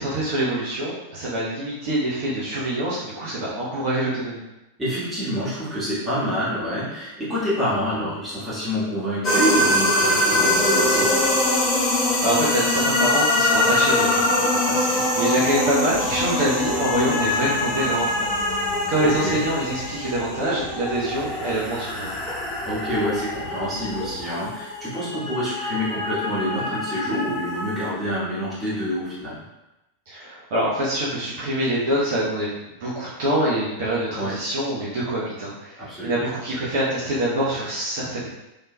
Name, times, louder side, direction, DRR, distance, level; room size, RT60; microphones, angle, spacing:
voice 1, 0.0-4.4 12.2-18.2 18.9-22.2 30.1-32.5 32.8-38.3, right 1 dB, 50° right, -8 dB, 0.8 m, -25 dB
voice 2, 4.8-11.1 14.6-15.3 19.0-19.4 22.6-29.4 34.1-34.4 35.8-36.2, equal, 10° right, -10 dB, 1.4 m, -27 dB
sound 1, 9.2-27.9, left 1 dB, 25° left, 0.9 m, -23 dB
sound 2, 15.9-24.3, left 1 dB, 5° left, 1.2 m, -39 dB
3.4 x 2.8 x 2.2 m, 0.96 s
figure-of-eight pair, 90°, 0 cm